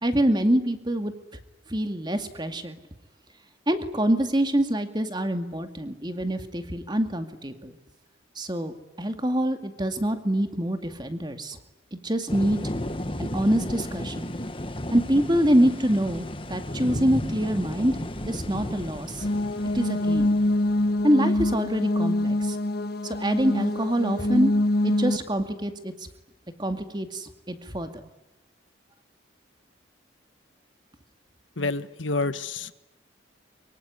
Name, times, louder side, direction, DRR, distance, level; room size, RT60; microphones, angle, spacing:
voice 1, 0.0-1.1 1.7-2.8 3.7-7.7 8.4-11.6 11.9-12.6 13.2-14.3 14.9-18.0 18.3-19.3 19.7-20.3 21.0-22.6 23.0-24.5 24.8-25.9 26.6-28.0, equal, 25° right, 7 dB, 2.3 m, -25 dB
sound 1, 12.3-21.1, left 1 dB, 25° left, 1.6 m, -34 dB
sound 2, 19.2-25.2, left 1 dB, 55° left, 1.7 m, -25 dB
voice 2, 31.6-32.7, left 3 dB, 85° left, 13 dB, 1.4 m, -28 dB
24.5 x 24.0 x 9.8 m, 0.96 s
head